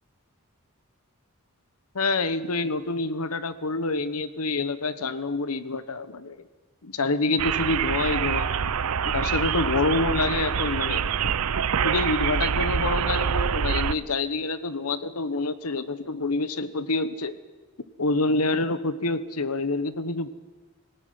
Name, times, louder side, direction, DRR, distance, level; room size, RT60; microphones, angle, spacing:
voice 1, 1.9-6.4 6.8-8.7 9.1-11.3 11.8-17.4 18.0-20.3, left 3 dB, 85° left, 13 dB, 1.2 m, -27 dB
sound 1, 7.4-13.9, right 7 dB, 80° right, 0.6 m, -25 dB
19.0 x 17.5 x 9.6 m, 1.3 s
head